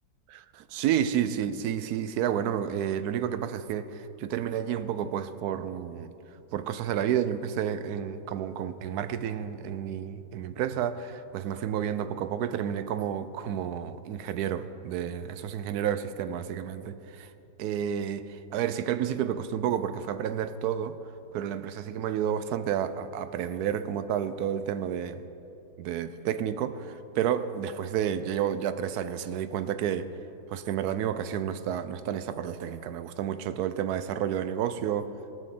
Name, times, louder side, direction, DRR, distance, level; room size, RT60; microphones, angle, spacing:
voice 1, 0.7-6.1 6.5-17.3 17.6-21.0 21.3-25.2 25.8-30.1 30.5-35.1, right 9 dB, 70° right, 12 dB, 1.0 m, -30 dB
17.5 x 6.3 x 7.7 m, 3.0 s
omnidirectional pair, 1.9 m